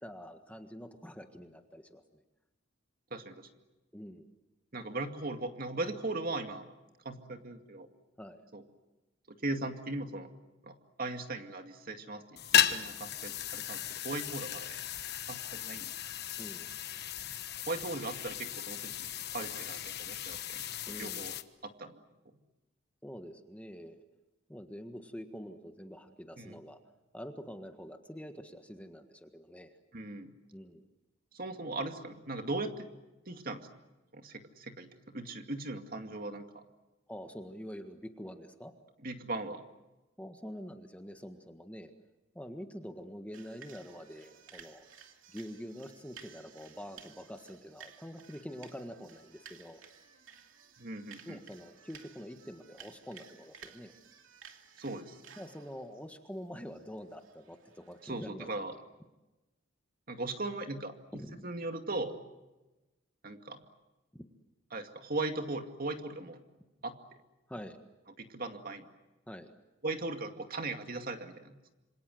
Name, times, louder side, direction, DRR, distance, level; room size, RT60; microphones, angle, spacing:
voice 1, 0.0-2.2 3.9-4.3 8.2-8.4 16.4-16.7 20.9-21.3 23.0-24.0 24.5-26.8 27.1-29.7 30.5-30.8 37.1-38.7 40.2-41.9 42.3-44.9 45.3-49.8 51.2-53.9 55.4-58.8 61.1-61.4 64.1-64.3 67.5-67.8 69.3-69.5, equal, 5° left, 6 dB, 1.6 m, -46 dB
voice 2, 3.1-3.5 4.7-6.7 7.0-7.9 8.5-8.6 9.3-10.3 10.6-12.2 12.5-14.8 15.3-15.9 17.7-18.9 19.3-21.3 21.6-22.0 26.4-26.6 29.9-30.3 31.3-32.9 33.3-33.7 34.1-36.7 39.0-39.6 50.8-51.4 54.8-55.1 58.0-58.7 60.1-62.2 63.2-63.6 64.7-66.4 66.8-66.9 68.2-68.9 69.8-71.7, right 2 dB, 45° right, 5 dB, 2.3 m, -38 dB
sound 1, 12.4-21.4, left 10 dB, 55° left, 1.2 m, -35 dB
sound 2, 43.3-58.2, right 7 dB, 80° right, 2.7 m, -56 dB
27.5 x 26.5 x 7.9 m, 1.1 s
head